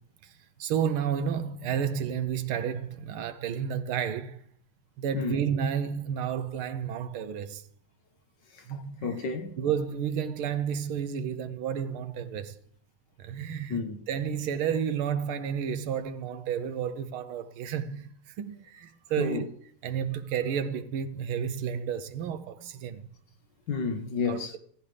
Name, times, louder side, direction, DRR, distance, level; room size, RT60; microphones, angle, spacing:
voice 1, 0.6-4.4 5.0-7.6 8.7-9.1 9.6-12.6 13.2-19.5 19.8-23.1 24.2-24.6, right 8 dB, 75° right, 1.7 m, -31 dB
voice 2, 8.7-9.6 13.7-14.0 19.2-19.4 23.7-24.5, left 4 dB, 55° left, 1.7 m, -31 dB
16.5 x 13.5 x 3.4 m
omnidirectional pair, 2.4 m